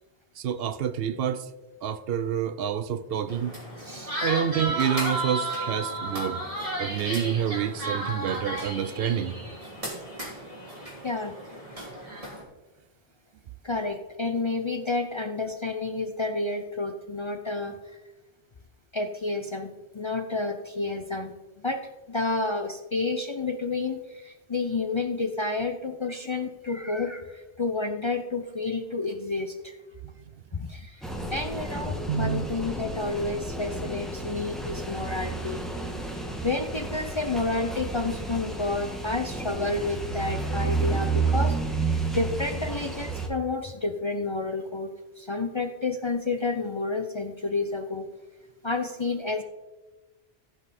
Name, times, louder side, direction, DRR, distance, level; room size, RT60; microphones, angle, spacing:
voice 1, 0.4-1.5 1.8-3.5 4.2-6.4 6.8-9.3 32.1-32.5, right 9 dB, 70° right, 0.7 m, -28 dB
sound 1, 3.3-12.4, right 1 dB, 30° right, 3.1 m, -33 dB
voice 2, 3.8-4.1 11.0-11.3 13.6-17.8 18.9-21.3 21.6-21.8 22.1-29.8 30.5-35.6 36.4-44.9 45.2-48.1 48.6-49.4, left 3 dB, 40° left, 0.5 m, -30 dB
sound 2, 31.0-43.3, right 3 dB, ahead, 1.2 m, -31 dB
15.5 x 5.4 x 4.1 m
omnidirectional pair, 1.1 m